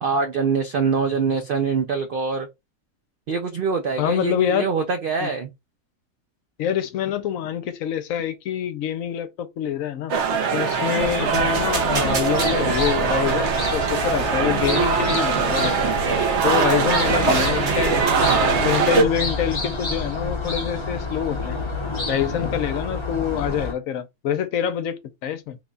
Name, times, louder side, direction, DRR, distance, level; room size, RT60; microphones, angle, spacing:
voice 1, 0.0-2.5 3.3-5.5 16.6-17.3, right 5 dB, 75° right, 0.5 m, -24 dB
voice 2, 4.0-4.7 5.2-5.3 6.6-10.1 10.5-15.8 16.4-18.0 18.3-21.6 22.1-25.6, left 9 dB, 75° left, 1.0 m, -26 dB
sound 1, 10.1-19.0, right 5 dB, 60° right, 1.0 m, -22 dB
sound 2, 11.0-23.7, left 3 dB, 25° left, 0.7 m, -29 dB
sound 3, 13.3-13.4 13.9-14.3 14.7-15.4 16.4-16.8 17.2-19.0, right 1 dB, 35° right, 0.7 m, -29 dB
3.3 x 2.3 x 3.8 m
omnidirectional pair, 1.5 m